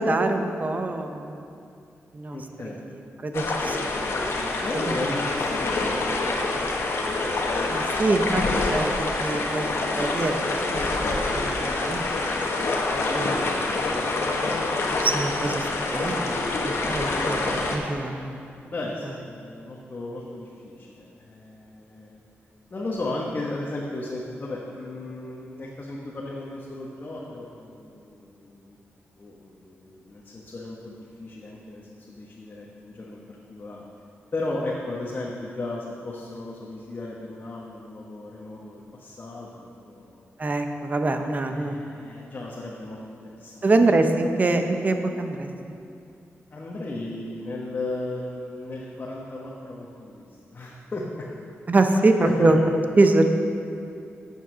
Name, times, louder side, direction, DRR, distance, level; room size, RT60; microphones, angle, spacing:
voice 1, 0.0-1.4 2.1-2.4 2.9-4.1 4.7-4.9 7.7-8.4 8.7-12.1 12.9-13.8 15.0-18.4 40.4-41.7 43.6-45.5 51.7-52.6 53.0-53.3, right 2 dB, 35° right, 6 dB, 0.8 m, -24 dB
voice 2, 2.3-2.8 4.6-7.3 13.8-14.3 14.9-15.1 18.7-22.2 22.7-28.8 29.2-31.8 32.1-33.2 33.5-33.8 34.3-40.2 41.4-43.0 43.2-43.7 46.5-51.3 52.2-52.5, left 2 dB, 40° left, -4 dB, 1.2 m, -35 dB
sound 1, 3.3-17.8, left 2 dB, 70° left, 1.3 m, -26 dB
8.8 x 7.4 x 6.3 m, 2.5 s
cardioid pair, 90°, 5 cm